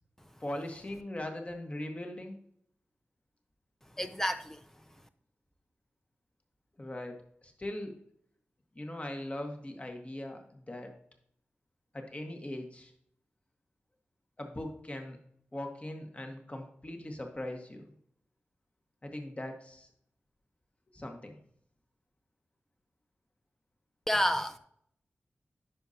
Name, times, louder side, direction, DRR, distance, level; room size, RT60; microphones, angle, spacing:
voice 1, 0.4-2.3 6.8-7.9 8.7-10.9 11.9-12.9 14.4-15.2 15.5-17.8 19.0-19.9 20.9-21.3, left 1 dB, 30° left, 1.5 m, -40 dB
voice 2, 4.0-4.6 24.1-24.6, equal, 10° left, 0.5 m, -29 dB
10.5 x 5.3 x 2.8 m
cardioid pair, 50°, 4 cm